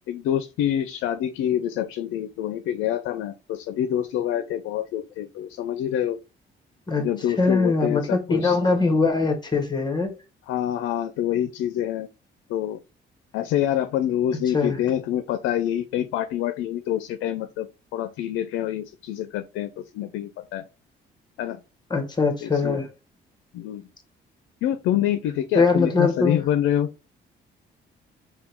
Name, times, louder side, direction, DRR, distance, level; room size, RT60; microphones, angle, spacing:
voice 1, 0.1-6.2 7.0-8.6 10.5-12.1 12.5-12.8 13.3-17.7 17.9-20.6 21.4-21.6 22.4-22.7 23.5-23.9 24.6-26.9, left 11 dB, 90° left, 0.4 m, -26 dB
voice 2, 7.4-10.1 14.5-14.8 21.9-22.9 25.5-26.5, left 4 dB, 20° left, 1.2 m, -22 dB
3.6 x 2.2 x 4.3 m
cardioid pair, 90°, 20 cm